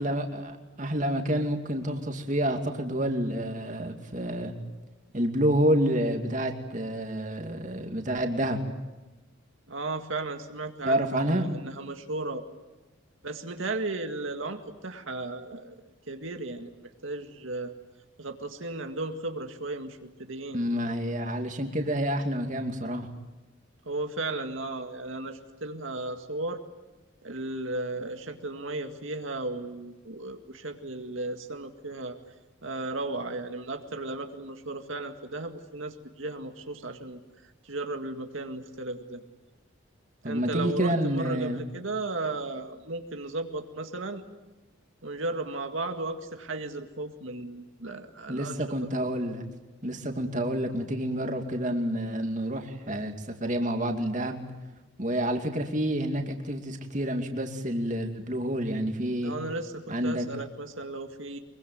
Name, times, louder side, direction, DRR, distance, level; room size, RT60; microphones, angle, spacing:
voice 1, 0.0-4.5 5.1-8.6 10.8-11.5 20.5-23.1 40.2-41.6 48.3-49.4 49.8-54.4 55.0-59.3 59.9-60.3, right 1 dB, 35° right, 4 dB, 2.5 m, -28 dB
voice 2, 9.7-12.4 13.2-15.8 16.1-16.7 17.0-17.7 18.2-20.6 23.9-26.6 27.2-32.2 32.6-37.2 37.6-39.2 40.2-44.2 45.0-48.6 59.2-61.4, right 2 dB, 75° right, 5 dB, 2.0 m, -35 dB
24.0 x 23.5 x 9.4 m, 1.1 s
head